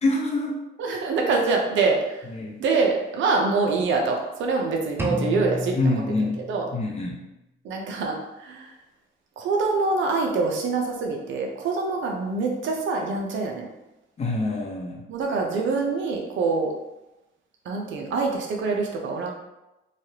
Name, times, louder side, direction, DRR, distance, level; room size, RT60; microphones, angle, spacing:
voice 1, 0.0-0.6 2.3-2.6 5.8-6.4 6.7-7.2 14.2-15.0, left 2 dB, 35° left, -2 dB, 0.8 m, -25 dB
voice 2, 0.8-2.2 2.6-6.7 7.6-8.7 9.4-13.7 15.1-16.7 17.7-19.3, right 4 dB, 75° right, 1 dB, 0.6 m, -25 dB
sound 1, 5.0-7.0, left 1 dB, 10° right, 0.5 m, -31 dB
3.1 x 2.4 x 2.8 m, 0.96 s
cardioid pair, 90°, 20 cm